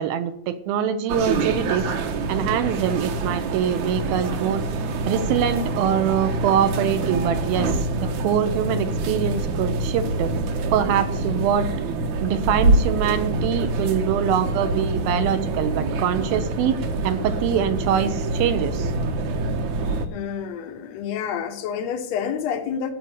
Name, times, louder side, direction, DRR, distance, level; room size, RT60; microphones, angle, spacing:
voice 1, 0.0-1.9 2.3-4.6 5.1-10.3 10.7-11.7 12.2-16.8 17.0-18.9, right 9 dB, 80° right, 2.5 m, -24 dB
sound 1, 1.1-20.1, right 2 dB, 65° right, 2.0 m, -25 dB
voice 2, 20.1-22.9, left 8 dB, 75° left, 1.6 m, -28 dB
15.0 x 5.3 x 8.0 m
omnidirectional pair, 4.5 m